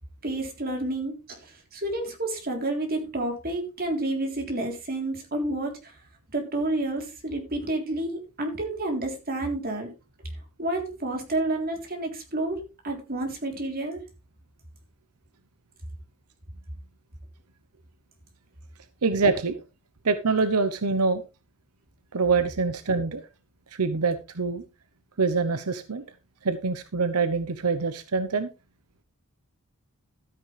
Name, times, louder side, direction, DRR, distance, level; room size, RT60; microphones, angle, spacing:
voice 1, 0.2-5.9 6.3-9.9 10.2-10.3 10.6-14.0, right 2 dB, 40° right, 2 dB, 3.5 m, -30 dB
voice 2, 19.0-19.6 20.0-21.2 22.1-23.2 23.7-24.6 25.2-26.0 26.4-28.5, right 4 dB, 85° right, 11 dB, 0.9 m, -25 dB
13.0 x 9.4 x 3.3 m, 0.28 s
head